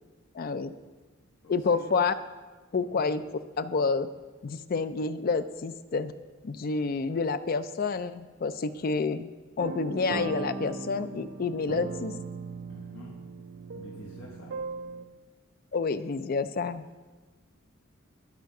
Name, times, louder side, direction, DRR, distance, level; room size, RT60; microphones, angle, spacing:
voice 1, 0.3-0.7 1.5-2.1 2.7-3.2 3.6-4.1 4.4-6.1 6.4-9.3 9.6-12.2 15.7-16.8, left 4 dB, 45° left, 12 dB, 0.4 m, -29 dB
voice 2, 1.4-2.0 2.9-3.0 8.6-8.9 12.7-13.2 13.7-14.6, left 1 dB, 70° left, -4 dB, 1.4 m, -48 dB
sound 1, 9.6-15.1, right 3 dB, 60° right, 0.5 m, -38 dB
11.5 x 4.6 x 5.9 m, 1.3 s
head